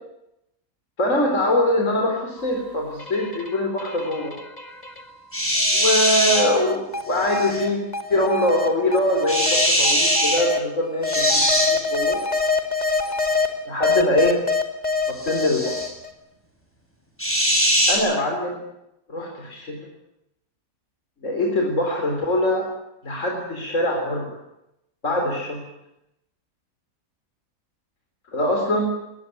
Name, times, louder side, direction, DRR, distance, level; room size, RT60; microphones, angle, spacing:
voice 1, 1.0-4.4 5.7-7.8 8.1-12.2 13.7-14.4 15.1-15.8 17.9-18.6 19.1-19.8 21.2-22.7 23.0-24.3 25.0-25.6 28.3-28.9, left 1 dB, 60° left, 1 dB, 4.3 m, -23 dB
sound 1, 2.4-5.2 5.7-10.6 11.0-13.5 13.8-16.1, left 4 dB, 30° left, 2.6 m, -26 dB
sound 2, 5.3-6.4 7.2-7.6 9.3-10.4 11.1-11.7 15.2-15.9 17.2-17.9, equal, 10° left, 7.8 m, -21 dB
22.0 x 19.5 x 9.3 m, 0.85 s
omnidirectional pair, 1.5 m